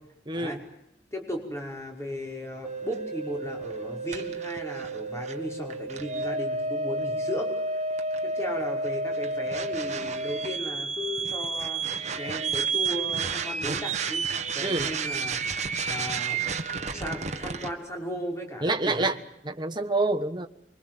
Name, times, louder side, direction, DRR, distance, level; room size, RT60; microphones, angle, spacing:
voice 1, 0.3-0.6 14.6-14.9 18.6-19.2 19.4-20.5, right 2 dB, 25° right, 5 dB, 1.4 m, -27 dB
voice 2, 1.1-7.5 7.7-7.8 8.2-11.8 12.2-14.2 14.5-15.4 15.9-16.4 16.9-19.1, equal, 15° left, 1 dB, 5.5 m, -36 dB
sound 1, 2.6-17.7, right 4 dB, 40° right, 1.7 m, -31 dB
25.0 x 23.5 x 7.7 m, 0.79 s
head